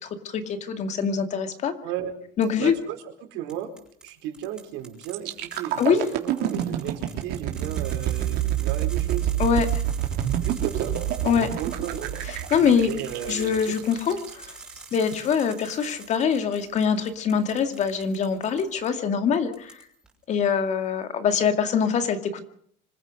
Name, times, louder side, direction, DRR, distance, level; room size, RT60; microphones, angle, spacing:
voice 1, 0.0-1.7 2.4-2.7 5.8-6.1 9.4-9.8 11.2-11.5 12.3-12.9 13.2-14.5 14.9-19.8 20.3-22.4, left 6 dB, 40° left, 8 dB, 2.4 m, -24 dB
voice 2, 1.8-2.1 2.6-3.7 4.0-9.3 10.4-11.0 11.6-12.1 12.8-13.8, right 11 dB, 75° right, 5 dB, 4.6 m, -35 dB
sound 1, 2.4-2.8 3.5-18.9 19.3-20.1, right 2 dB, 5° right, 5.7 m, -46 dB
sound 2, 5.1-14.9 15.4-15.6, right 11 dB, 55° right, 3.5 m, -28 dB
26.0 x 15.0 x 6.5 m, 0.64 s
cardioid pair, 150°, 19 cm